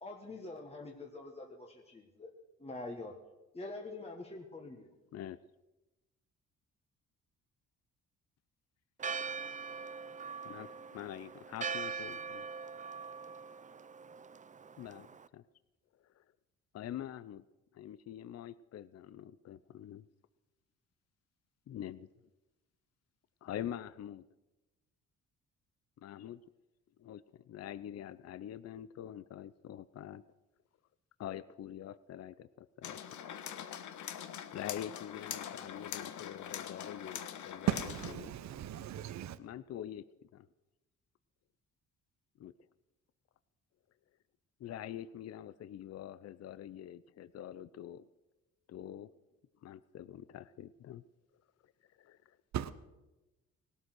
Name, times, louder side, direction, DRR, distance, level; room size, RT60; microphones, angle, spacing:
voice 1, 0.0-2.3 2.6-3.2 3.5-4.9, left 2 dB, 20° left, 1.6 m, -45 dB
Church bell, 9.0-15.3, right 5 dB, 25° right, 0.5 m, -42 dB
voice 2, 10.4-12.5 14.8-15.1 15.3-15.4 16.2-16.3 16.7-17.5 17.7-20.1 21.7-22.1 23.4-24.2 26.0-26.4 27.0-30.2 31.2-33.0 34.5-37.7 38.2-38.3 39.4-40.0 40.3-40.5 42.4-42.5 44.6-48.1 48.7-49.1 49.6-51.0 52.0-52.4, left 11 dB, 55° left, 0.6 m, -45 dB
sound 1, 32.8-38.1, left 9 dB, 75° left, 1.1 m, -43 dB
voice 3, 37.7-39.4 52.5-52.7, right 11 dB, 65° right, 0.9 m, -36 dB
18.5 x 12.5 x 6.2 m
cardioid pair, 90°, 30 cm